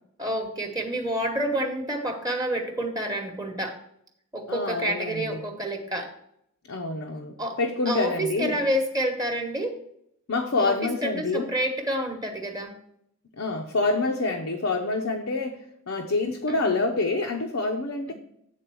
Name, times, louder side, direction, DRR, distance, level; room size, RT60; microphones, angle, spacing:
voice 1, 0.2-3.8 4.3-6.1 7.4-7.6 7.8-9.8 10.6-12.8 16.5-16.8 18.1-18.2, right 1 dB, 15° right, 3 dB, 1.0 m, -29 dB
voice 2, 4.5-5.4 6.7-8.6 10.3-11.5 13.4-15.6 15.9-18.1, left 3 dB, 75° left, 2 dB, 0.8 m, -27 dB
8.5 x 3.9 x 6.1 m, 0.74 s
head